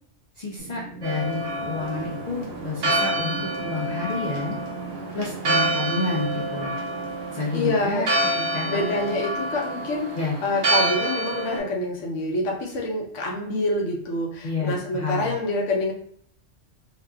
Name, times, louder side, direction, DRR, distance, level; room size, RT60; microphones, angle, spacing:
voice 1, 0.4-4.6 5.1-6.7 7.3-8.1 8.4-8.8 10.1-10.4 14.4-15.3, left 4 dB, 55° left, -4 dB, 0.5 m, -29 dB
sound 1, 0.6-12.7, right 3 dB, 5° left, 0.8 m, -40 dB
Church bell, 1.0-11.6, right 2 dB, 65° right, 0.9 m, -28 dB
voice 2, 7.5-8.0 8.7-10.1 10.4-15.9, left 2 dB, 80° left, -1 dB, 1.0 m, -26 dB
2.7 x 2.4 x 2.3 m, 0.64 s
omnidirectional pair, 1.2 m